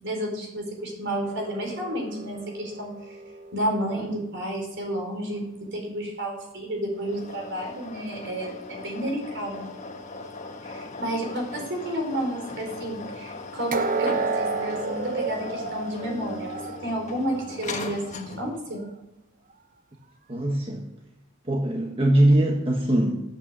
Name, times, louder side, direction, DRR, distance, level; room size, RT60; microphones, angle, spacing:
voice 1, 0.0-3.2 3.5-9.7 10.6-18.8, right 1 dB, 60° right, 1 dB, 4.5 m, -31 dB
sound 1, 1.2-4.4 13.7-17.6 18.0-18.2 18.8-18.9, right 4 dB, 40° right, 0.9 m, -32 dB
sound 2, 6.9-18.7, left 3 dB, 35° left, 1.6 m, -39 dB
voice 2, 20.3-20.9 21.4-23.2, right 1 dB, 25° right, 1 dB, 1.4 m, -21 dB
14.0 x 9.1 x 8.2 m, 0.89 s
head